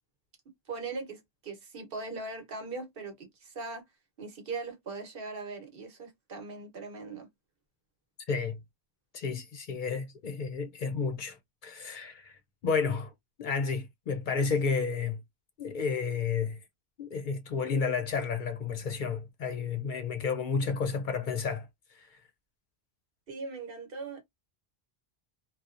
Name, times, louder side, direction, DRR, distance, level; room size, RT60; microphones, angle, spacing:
voice 1, 0.7-3.8 4.2-7.3 23.3-24.2, right 3 dB, 65° right, 1.1 m, -40 dB
voice 2, 8.3-8.6 9.1-11.4 11.6-13.1 13.4-15.2 15.6-16.6 17.0-21.7 21.9-22.1, left 5 dB, 60° left, 0.6 m, -31 dB
2.7 x 2.1 x 2.4 m
omnidirectional pair, 1.0 m